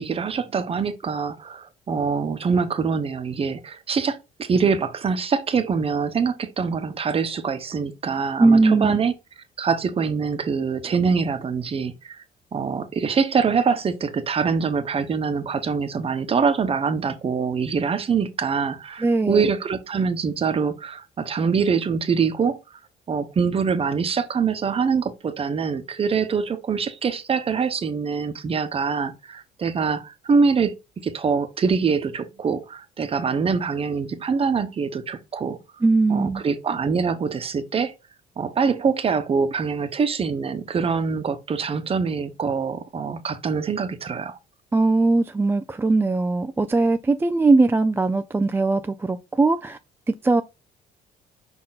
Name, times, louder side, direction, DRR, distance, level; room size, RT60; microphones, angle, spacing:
voice 1, 0.0-9.1 9.6-12.2 12.5-22.6 23.1-30.7 31.0-35.6 36.1-37.9 38.4-44.4, right 5 dB, 35° right, 1.0 m, -24 dB
voice 2, 8.4-9.0 19.0-19.5 35.8-36.4 44.7-49.8 50.1-50.4, right 3 dB, 15° right, 0.4 m, -20 dB
5.4 x 4.3 x 4.0 m
cardioid pair, 110°, 17 cm